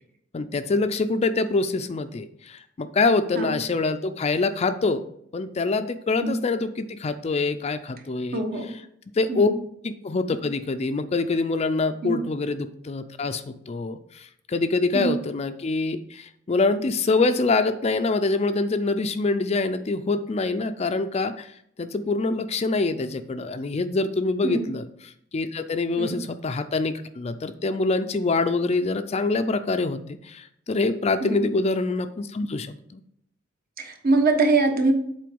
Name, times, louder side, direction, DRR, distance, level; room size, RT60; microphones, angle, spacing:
voice 1, 0.3-5.0 5.3-8.4 9.1-9.5 9.8-33.0, left 3 dB, 35° left, 10 dB, 0.4 m, -25 dB
voice 2, 8.3-8.7 9.3-9.6 12.0-12.2 14.9-15.1 24.4-24.7 26.0-26.2 31.2-31.4 33.8-34.9, right 3 dB, 50° right, 3 dB, 1.3 m, -23 dB
7.6 x 4.3 x 5.3 m, 0.72 s
head